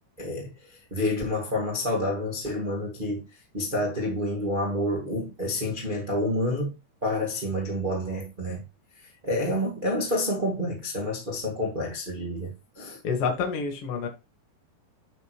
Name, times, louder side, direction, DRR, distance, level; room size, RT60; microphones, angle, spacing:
voice 1, 0.2-3.2 3.5-6.7 7.0-8.6 9.2-13.0, left 1 dB, 35° right, 0.7 m, -29 dB
voice 2, 13.0-14.1, left 5 dB, 45° left, 2.1 m, -28 dB
9.0 x 6.0 x 3.1 m
omnidirectional pair, 5.0 m